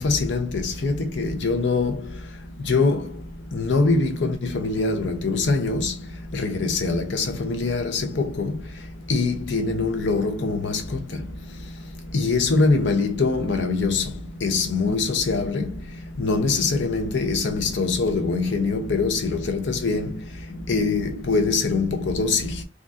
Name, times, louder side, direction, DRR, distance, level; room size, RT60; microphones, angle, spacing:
voice 1, 0.0-1.9 2.7-3.0 3.5-5.9 6.3-8.5 9.1-10.8 12.1-14.0 14.4-15.7 16.2-20.1 20.7-22.5, left 3 dB, 75° left, 0.7 m, -23 dB
3.8 x 2.3 x 2.5 m
head